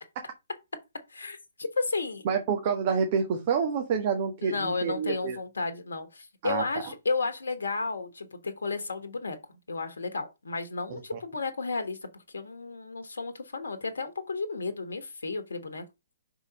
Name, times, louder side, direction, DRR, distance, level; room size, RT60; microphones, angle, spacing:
voice 1, 1.1-2.2 4.4-9.4 9.7-12.0 12.3-15.8, left 4 dB, 75° left, 1.2 m, -33 dB
voice 2, 2.2-5.4 6.4-6.6 11.1-11.2, right 6 dB, 40° right, 1.3 m, -28 dB
5.6 x 4.0 x 5.0 m
figure-of-eight pair, 130°, 0 cm